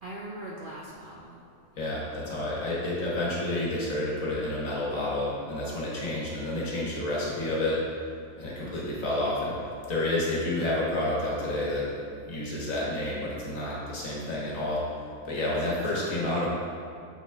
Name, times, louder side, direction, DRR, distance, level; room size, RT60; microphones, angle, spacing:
voice 1, 0.0-1.4 8.6-8.9 15.4-16.4, right 1 dB, 60° right, -3 dB, 0.5 m, -42 dB
voice 2, 1.8-8.0 8.4-15.0 15.2-16.5, left 1 dB, 65° left, -6 dB, 1.7 m, -30 dB
7.2 x 4.0 x 3.4 m, 2.4 s
omnidirectional pair, 1.5 m